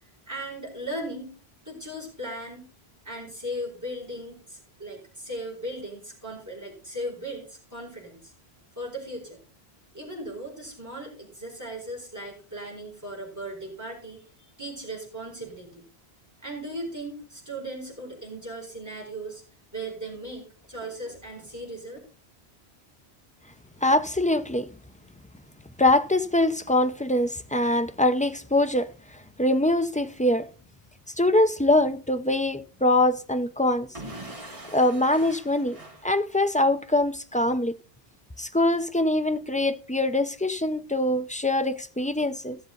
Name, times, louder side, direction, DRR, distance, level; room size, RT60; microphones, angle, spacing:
voice 1, 0.3-1.3 1.6-2.7 3.0-8.3 8.7-9.4 9.9-14.2 14.6-15.8 16.4-19.4 19.7-22.0, right 1 dB, 15° right, 4.9 m, -37 dB
voice 2, 23.8-24.7 25.8-28.9 29.4-30.5 31.2-33.9 34.7-35.8 36.0-37.8 38.4-42.6, left 1 dB, 10° left, 0.4 m, -23 dB
Explosion / Shatter, 33.9-36.7, right 1 dB, 30° right, 2.3 m, -42 dB
15.5 x 6.9 x 3.9 m
omnidirectional pair, 1.1 m